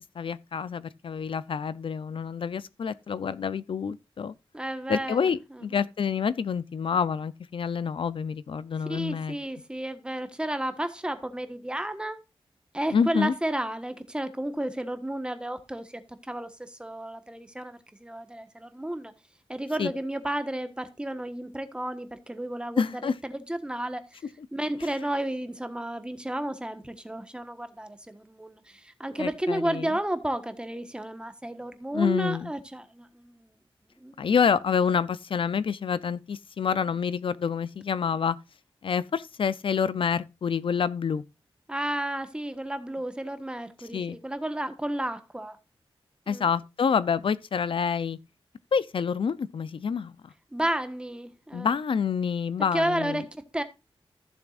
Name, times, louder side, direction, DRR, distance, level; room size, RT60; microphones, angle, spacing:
voice 1, 0.2-4.3 4.9-9.4 12.9-13.3 19.8-19.9 22.8-23.2 24.8-24.9 29.2-29.9 31.9-32.5 34.2-38.4 38.8-41.2 43.9-44.2 46.3-48.2 48.7-50.1 51.5-53.2, left 6 dB, 65° left, 0.5 m, -27 dB
voice 2, 4.5-5.3 5.5-5.8 8.9-12.2 12.7-16.0 16.3-19.1 19.5-24.0 24.5-33.5 34.0-34.1 41.7-45.6 46.3-46.5 50.5-51.7 52.7-53.6, right 1 dB, 10° right, 1.2 m, -32 dB
15.0 x 7.0 x 2.5 m
wide cardioid pair, 140°, 10 cm